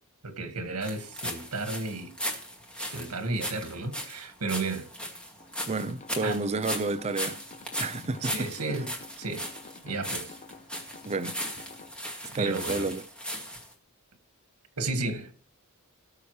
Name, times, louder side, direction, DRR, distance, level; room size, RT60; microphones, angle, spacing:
voice 1, 0.2-2.1 2.9-4.9 6.2-6.4 8.2-8.9 9.2-9.5 9.8-10.3 12.4-12.9 14.8-15.3, right 3 dB, 85° right, 1.7 m, -33 dB
sound 1, 0.8-13.7, equal, 5° left, 2.2 m, -37 dB
sound 2, 5.4-11.9, left 3 dB, 35° left, 0.9 m, -49 dB
voice 2, 5.7-7.4 7.8-8.5 11.0-11.4 12.3-13.0, right 3 dB, 30° right, 0.5 m, -30 dB
18.5 x 6.9 x 3.2 m
head